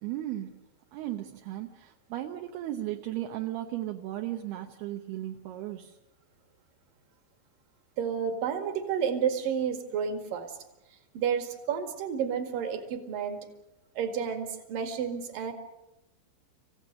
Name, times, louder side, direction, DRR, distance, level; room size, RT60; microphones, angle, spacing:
voice 1, 0.0-0.7 0.9-6.0, right 13 dB, 70° right, 3 dB, 2.6 m, -36 dB
voice 2, 8.0-10.5 11.1-13.4 13.9-15.5, right 7 dB, 55° right, 6 dB, 3.1 m, -31 dB
28.0 x 16.0 x 6.7 m, 0.95 s
omnidirectional pair, 5.6 m